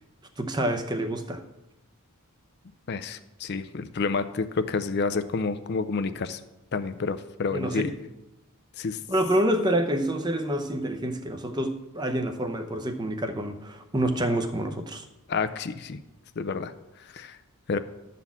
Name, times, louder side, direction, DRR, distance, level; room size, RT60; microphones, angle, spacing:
voice 1, 0.4-1.4 7.5-7.9 9.1-15.0, right 1 dB, 20° right, 7 dB, 0.6 m, -27 dB
voice 2, 2.9-6.4 6.7-7.8 8.8-9.0 15.3-16.0 16.4-16.7 17.1-17.4 17.7-17.8, left 4 dB, 50° left, 11 dB, 0.4 m, -29 dB
11.0 x 4.2 x 7.1 m, 0.97 s
head